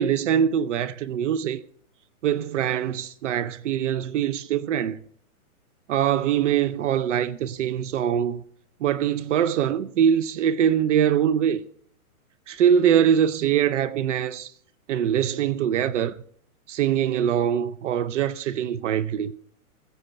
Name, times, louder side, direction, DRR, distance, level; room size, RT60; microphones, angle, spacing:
voice 1, 0.0-1.6 2.2-5.0 5.9-8.4 8.8-11.6 12.5-14.5 14.9-16.1 16.7-19.3, right 9 dB, 55° right, 0.6 m, -23 dB
14.5 x 7.9 x 4.4 m
hypercardioid pair, 145°, 44 cm